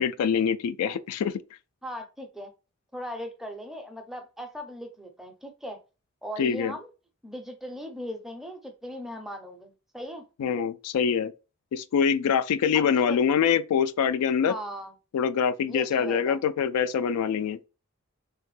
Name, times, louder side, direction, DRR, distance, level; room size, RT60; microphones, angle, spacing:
voice 1, 0.0-1.3 6.4-6.7 10.4-11.3 11.7-14.6 15.1-17.6, left 7 dB, 90° left, 0.3 m, -24 dB
voice 2, 1.8-2.5 2.9-5.8 6.2-6.9 7.2-10.2 12.7-13.2 14.5-14.9 15.7-16.4, equal, ahead, 0.4 m, -38 dB
3.3 x 2.1 x 3.1 m
head